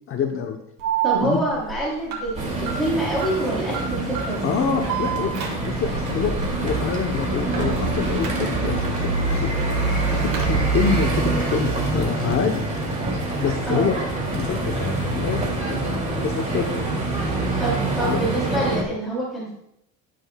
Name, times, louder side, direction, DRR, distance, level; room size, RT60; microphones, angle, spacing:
voice 1, 0.1-0.6 1.2-1.4 4.4-9.5 10.1-12.6 13.4-14.0 14.3-15.4 15.7-16.7 18.0-18.2, left 6 dB, 40° left, 2 dB, 0.9 m, -26 dB
Alarm, 0.8-9.0 9.3-10.6, right 7 dB, 65° right, 3.0 m, -30 dB
voice 2, 1.0-4.4 13.7-13.9 17.6-19.5, right 2 dB, ahead, -8 dB, 3.1 m, -26 dB
sound 1, 2.3-18.8, right 2 dB, 20° right, 2.3 m, -25 dB
12.5 x 9.2 x 2.3 m, 0.77 s
cardioid pair, 155°, 35 cm